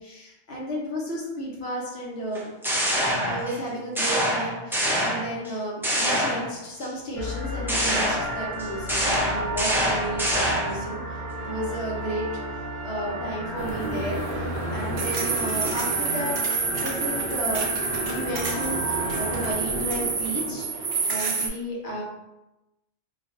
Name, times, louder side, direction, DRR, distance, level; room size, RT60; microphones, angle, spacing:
voice 1, 0.0-2.5 3.2-17.7 18.0-22.0, right 1 dB, 70° left, -3 dB, 1.2 m, -33 dB
sound 1, 2.3-3.6 4.0-5.5 5.8-6.9 7.7-10.9, equal, 5° right, 0.3 m, -25 dB
sound 2, 7.2-19.5, equal, 30° left, 0.8 m, -33 dB
sound 3, 13.6-21.5, right 4 dB, 65° right, 0.8 m, -28 dB
4.3 x 2.5 x 2.5 m, 0.96 s
omnidirectional pair, 1.1 m